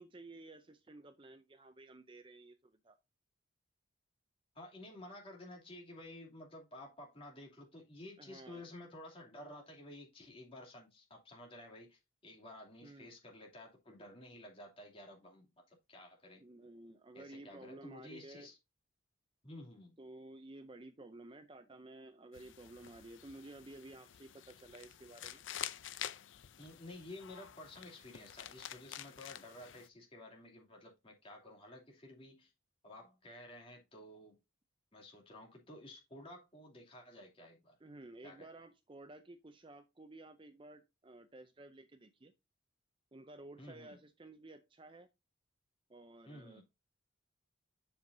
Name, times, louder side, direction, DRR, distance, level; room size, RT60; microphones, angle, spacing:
voice 1, 0.0-3.0 8.2-8.7 12.8-13.1 16.4-18.5 20.0-25.4 37.8-42.3 43.1-45.1 45.9-46.6, right 2 dB, 25° right, 0.5 m, -54 dB
voice 2, 4.5-16.4 17.1-18.6 19.4-20.0 26.6-32.5 32.8-34.4 34.9-37.8 38.2-38.5 43.6-44.0 46.2-46.6, left 1 dB, 25° left, 2.7 m, -52 dB
sound 1, 22.3-29.9, left 11 dB, 70° left, 0.5 m, -48 dB
7.8 x 7.0 x 2.6 m
head